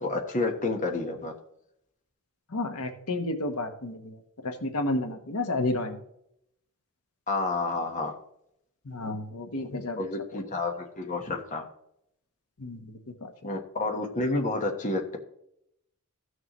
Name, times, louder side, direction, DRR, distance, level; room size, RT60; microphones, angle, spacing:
voice 1, 0.0-1.3 7.3-8.1 9.7-11.6 13.4-15.2, left 2 dB, 35° left, 2 dB, 1.2 m, -30 dB
voice 2, 2.5-6.0 8.8-10.0 10.3-10.4 12.6-12.9 13.2-13.3, left 2 dB, 80° left, 5 dB, 1.2 m, -31 dB
15.5 x 6.4 x 3.1 m, 0.76 s
head